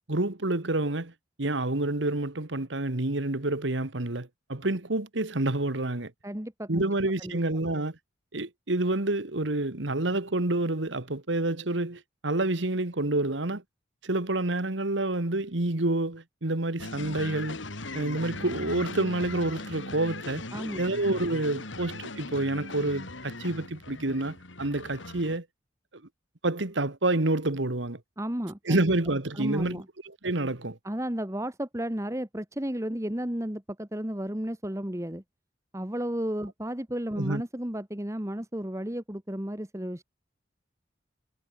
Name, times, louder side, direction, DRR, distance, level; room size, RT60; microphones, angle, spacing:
voice 1, 0.1-1.1 1.4-6.1 6.7-8.0 8.3-13.6 14.0-17.6 17.9-20.4 20.8-25.5 25.9-26.0 26.4-28.0 28.7-30.8 37.2-37.4, right 2 dB, 80° right, 1.8 m, -28 dB
voice 2, 6.2-6.8 7.2-7.4 20.5-20.8 28.2-28.8 29.3-29.8 30.8-35.2 35.7-40.0, equal, 15° right, 1.6 m, -33 dB
sound 1, 16.8-25.4, left 2 dB, 85° left, 3.3 m, -39 dB
head